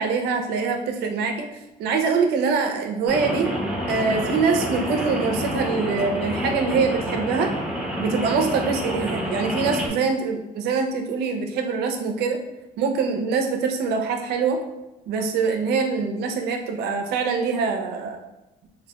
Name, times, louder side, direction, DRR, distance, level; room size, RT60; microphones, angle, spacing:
voice 1, 0.0-1.5 1.8-3.5 3.9-7.5 8.0-12.4 12.8-14.6 15.1-18.2, right 5 dB, 75° right, 4 dB, 0.5 m, -24 dB
Rain, 3.1-9.9, equal, 5° right, 0.7 m, -28 dB
2.6 x 2.1 x 2.8 m, 1.0 s
cardioid pair, 110°, 17 cm